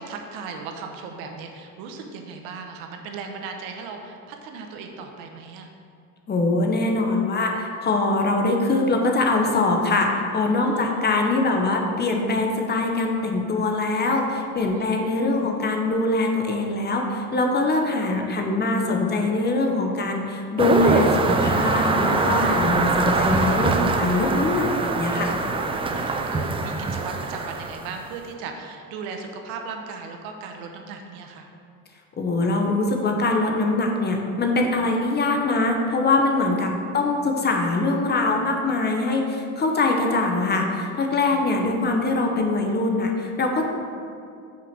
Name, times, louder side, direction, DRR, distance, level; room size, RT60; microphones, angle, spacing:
voice 1, 0.0-5.7 10.6-10.9 14.6-14.9 22.6-23.7 25.3-31.5 36.8-37.4, right 5 dB, 85° right, 3 dB, 1.0 m, -37 dB
voice 2, 6.3-25.4 32.2-43.6, left 2 dB, 30° left, 2 dB, 0.9 m, -23 dB
sound 1, 20.6-28.1, right 3 dB, 15° right, 0.4 m, -23 dB
5.9 x 4.9 x 5.9 m, 2.4 s
cardioid pair, 115°, 34 cm